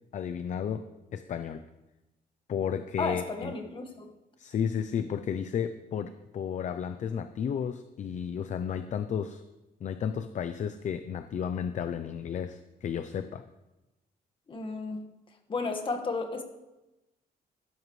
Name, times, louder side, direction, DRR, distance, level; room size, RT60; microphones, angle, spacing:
voice 1, 0.1-0.8 1.1-1.6 2.5-3.5 4.4-9.4 9.8-13.4, left 8 dB, 50° left, 10 dB, 0.6 m, -33 dB
voice 2, 3.0-4.1 14.5-15.0 15.5-16.4, left 3 dB, 30° left, 4 dB, 1.6 m, -33 dB
16.0 x 12.5 x 3.2 m, 1.0 s
cardioid pair, 140°, 16 cm